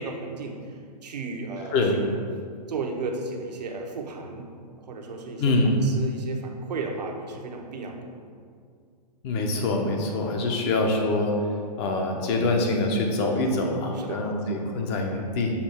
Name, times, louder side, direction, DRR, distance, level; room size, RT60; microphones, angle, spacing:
voice 1, 0.0-2.2 2.7-4.5 4.9-5.6 5.8-8.0 13.9-14.3, right 3 dB, 75° right, 2 dB, 1.0 m, -34 dB
voice 2, 5.4-5.7 9.2-11.3 11.8-15.5, left 2 dB, 40° left, 2 dB, 1.0 m, -25 dB
7.0 x 2.8 x 5.6 m, 2.1 s
hypercardioid pair, 125°, 21 cm